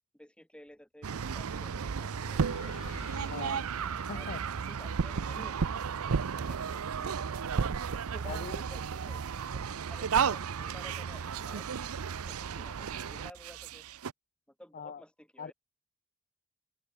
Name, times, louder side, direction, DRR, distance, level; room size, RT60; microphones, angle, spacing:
voice 1, 0.1-2.8 4.1-4.3 4.7-5.9 6.3-7.5 7.9-11.7 12.2-13.8 14.5-15.5, equal, 5° left, 8.0 m, -53 dB
sound 1, 1.0-14.1, right 6 dB, 75° right, 0.6 m, -33 dB
Fire, 2.1-8.4 9.1-9.2, left 2 dB, 80° left, 6.7 m, -52 dB
voice 2, 3.3-3.6 4.1-4.4 8.3-8.6 14.7-15.0 15.4-15.5, left 6 dB, 40° left, 0.5 m, -41 dB
sound 2, 11.1-12.6, right 2 dB, 40° right, 6.0 m, -60 dB
head